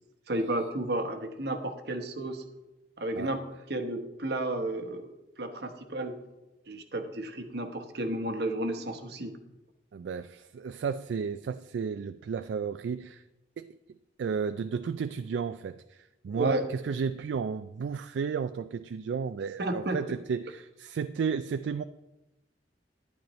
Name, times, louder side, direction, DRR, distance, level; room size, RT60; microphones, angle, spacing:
voice 1, 0.3-2.4 3.0-3.4 3.7-5.1 5.4-6.2 6.7-9.3 16.3-16.7 19.6-20.0, right 1 dB, 60° right, 7 dB, 1.0 m, -32 dB
voice 2, 9.9-13.2 13.6-13.7 14.2-21.8, right 6 dB, 80° right, 11 dB, 0.3 m, -33 dB
11.5 x 10.5 x 3.1 m, 0.97 s
head